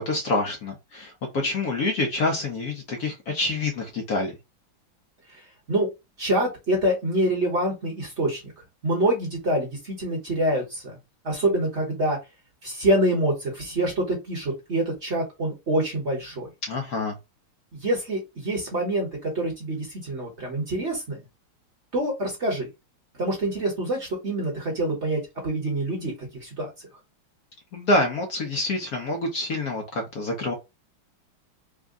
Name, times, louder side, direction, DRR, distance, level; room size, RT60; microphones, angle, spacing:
voice 1, 0.0-4.3 16.7-17.2 27.7-30.5, left 2 dB, 60° left, 2 dB, 1.1 m, -27 dB
voice 2, 6.2-8.5 8.8-10.9 11.2-12.2 12.6-16.5 17.7-21.2 21.9-22.7 23.2-26.1 26.4-26.7, right 1 dB, 40° right, -1 dB, 1.1 m, -26 dB
3.6 x 2.2 x 3.6 m, 0.23 s
omnidirectional pair, 2.2 m